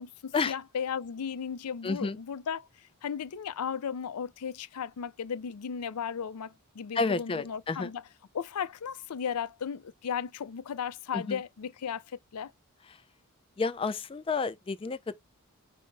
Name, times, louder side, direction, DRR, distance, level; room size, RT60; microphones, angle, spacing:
voice 1, 0.0-8.0 8.3-12.5, left 7 dB, 90° left, 0.5 m, -35 dB
voice 2, 1.8-2.2 6.9-7.9 11.1-11.4 12.9-13.0 13.6-15.1, left 4 dB, 25° left, 0.3 m, -30 dB
5.2 x 2.1 x 3.7 m
head